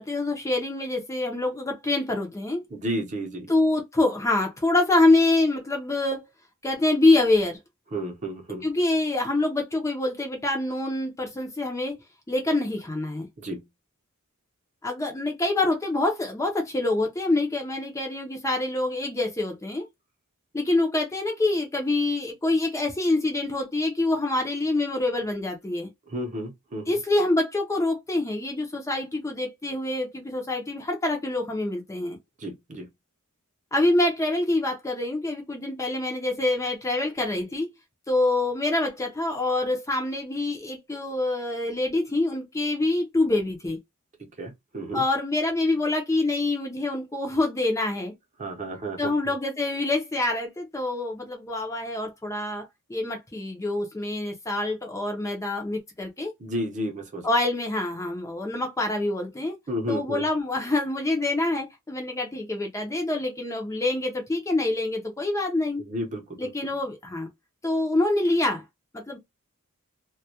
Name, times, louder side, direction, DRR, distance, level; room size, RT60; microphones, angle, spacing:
voice 1, 0.0-2.6 3.5-6.2 6.6-7.6 8.6-12.0 12.3-13.3 14.8-19.9 20.5-25.9 26.9-32.2 33.7-37.7 38.1-43.8 44.9-48.1 49.0-56.3 57.2-59.6 59.9-65.8 66.4-67.3 67.6-68.6 69.1-69.2, left 2 dB, 15° left, 0.4 m, -26 dB
voice 2, 2.7-3.5 7.9-8.7 13.4-13.6 26.1-27.0 32.4-32.9 44.4-45.0 48.4-49.1 56.4-57.3 59.7-60.3 65.8-66.7, right 1 dB, 35° right, 0.7 m, -32 dB
2.2 x 2.1 x 2.7 m
head